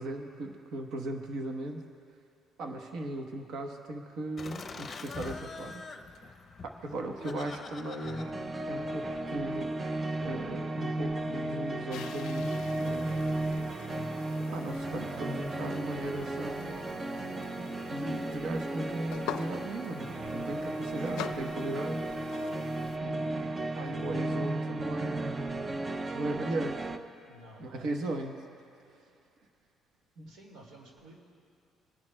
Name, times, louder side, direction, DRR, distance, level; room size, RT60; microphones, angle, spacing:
voice 1, 0.0-1.8 2.6-5.8 6.1-6.3 6.6-8.3 8.7-13.1 14.5-16.7 17.9-22.0 23.0-25.5 26.1-26.9 27.6-28.4 30.2-30.3, right 1 dB, 65° right, 3 dB, 1.0 m, -37 dB
Laughter, 4.4-9.5, left 4 dB, 30° left, 0.7 m, -45 dB
sound 1, 8.0-27.0, right 2 dB, 25° right, 0.4 m, -35 dB
sound 2, 11.9-23.0, left 8 dB, 85° left, 0.4 m, -45 dB
voice 2, 20.8-21.3 25.7-27.0 27.2-27.9 30.3-31.2, right 2 dB, 85° right, 0 dB, 2.1 m, -54 dB
26.5 x 10.5 x 2.2 m, 2.6 s
cardioid pair, 140°, 0 cm